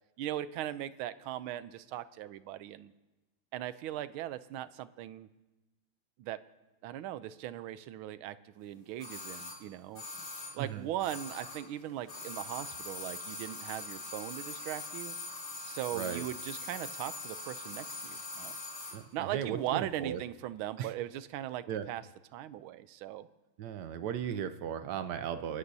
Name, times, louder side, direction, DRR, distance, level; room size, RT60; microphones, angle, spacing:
voice 1, 0.2-2.9 3.5-5.3 6.2-6.4 6.8-10.0 10.5-15.1 15.7-18.6 19.1-22.0 22.3-23.3, right 12 dB, 85° right, 14 dB, 1.4 m, -39 dB
sound 1, 9.0-11.8 12.0-19.0 19.3-19.4, left 3 dB, 50° left, 4.5 m, -42 dB
voice 2, 15.9-16.3 18.9-20.2 20.8-20.9 21.7-21.9 23.6-25.6, right 9 dB, 70° right, 11 dB, 1.1 m, -36 dB
29.5 x 13.0 x 2.7 m, 1.1 s
omnidirectional pair, 2.2 m